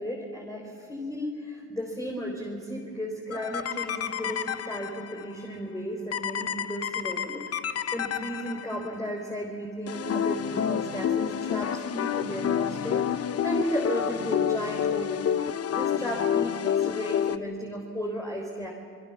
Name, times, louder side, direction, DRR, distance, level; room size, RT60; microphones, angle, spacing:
voice 1, 0.0-15.3 15.7-18.7, equal, 10° left, -1 dB, 4.4 m, -34 dB
sound 1, 3.3-5.2 6.1-8.9 9.9-17.4, left 9 dB, 50° left, 1.0 m, -29 dB
27.5 x 21.5 x 7.3 m, 2.1 s
cardioid pair, 90°, 30 cm